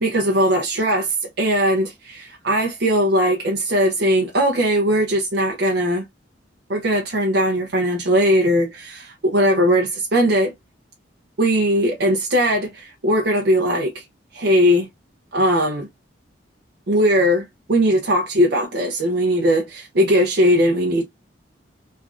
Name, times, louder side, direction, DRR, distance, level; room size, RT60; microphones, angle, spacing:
voice 1, 0.0-6.0 6.7-10.5 11.4-14.0 14.3-14.9 15.3-15.9 16.9-21.0, equal, 60° right, 0.5 m, -19 dB
3.1 x 2.4 x 2.4 m
head